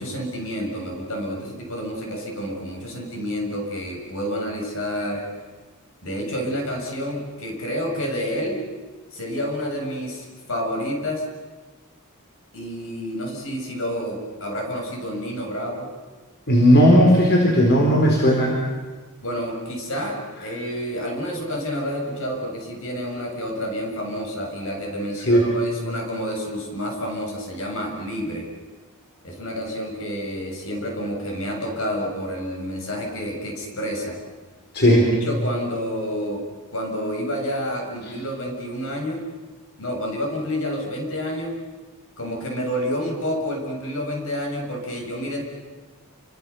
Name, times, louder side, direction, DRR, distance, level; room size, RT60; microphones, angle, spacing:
voice 1, 0.0-5.3 6.0-8.7 9.1-11.3 12.5-15.9 19.2-28.5 29.2-34.2 34.8-36.5 36.7-39.2 39.8-41.6 42.2-45.4, equal, 65° left, 2 dB, 7.0 m, -29 dB
voice 2, 16.5-18.6 25.3-25.5 34.7-35.1, equal, 50° left, -1 dB, 4.2 m, -15 dB
29.5 x 25.0 x 7.1 m, 1.4 s
head